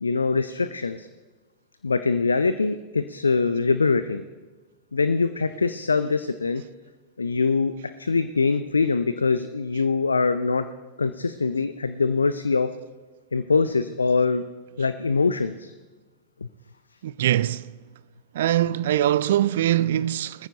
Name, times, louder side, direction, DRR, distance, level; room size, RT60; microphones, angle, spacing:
voice 1, 0.0-1.1 1.8-4.2 4.9-6.6 7.2-7.7 8.0-10.6 11.0-12.7 13.3-14.4 14.8-15.7, left 4 dB, 75° left, 0.4 m, -23 dB
voice 2, 17.0-17.7 18.3-20.5, right 12 dB, 60° right, 0.3 m, -22 dB
20.5 x 14.0 x 2.9 m
figure-of-eight pair, 90°, 0 cm